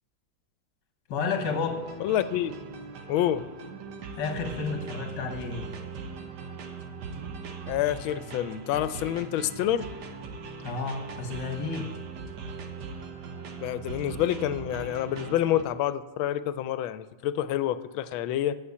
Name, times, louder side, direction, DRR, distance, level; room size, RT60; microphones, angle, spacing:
voice 1, 1.1-1.9 4.2-5.7 10.6-11.9, left 5 dB, 65° left, 5 dB, 1.9 m, -31 dB
sound 1, 1.4-15.6, right 4 dB, 60° right, 1.4 m, -40 dB
voice 2, 2.0-2.5 3.1-3.5 7.7-9.9 13.6-18.6, left 12 dB, 85° left, 14 dB, 1.4 m, -28 dB
8.9 x 7.0 x 8.4 m, 1.2 s
omnidirectional pair, 2.2 m